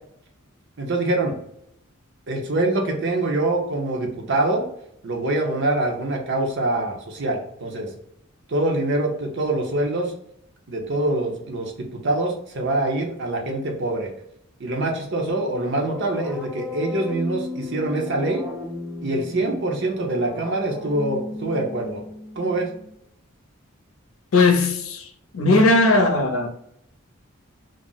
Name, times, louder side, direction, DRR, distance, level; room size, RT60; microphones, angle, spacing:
voice 1, 0.8-1.3 2.3-4.6 5.0-7.9 8.5-10.1 10.7-14.1 14.6-18.4 19.0-22.0 22.4-22.7, right 2 dB, 55° right, 0.7 m, -24 dB
sound 1, 15.2-23.0, left 2 dB, 5° right, 0.5 m, -35 dB
voice 2, 24.3-26.5, left 2 dB, 75° left, 0.6 m, -18 dB
2.4 x 2.0 x 3.8 m
head